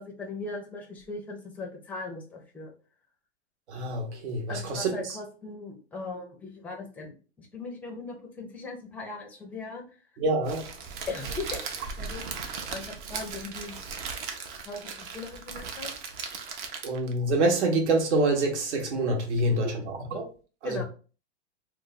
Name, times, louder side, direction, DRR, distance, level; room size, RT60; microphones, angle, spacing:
voice 1, 0.0-2.7 4.5-9.8 11.1-11.6 12.0-12.2 12.7-13.8 14.6-15.9 19.5-19.6 20.6-20.8, left 3 dB, 5° left, 0.5 m, -39 dB
voice 2, 3.7-5.2 10.2-10.7 16.8-19.7 20.1-20.3 20.6-20.8, right 2 dB, 75° right, 1.1 m, -26 dB
Crackle, 10.4-17.2, right 5 dB, 45° right, 0.7 m, -37 dB
2.5 x 2.3 x 4.0 m
hypercardioid pair, 130°, 34 cm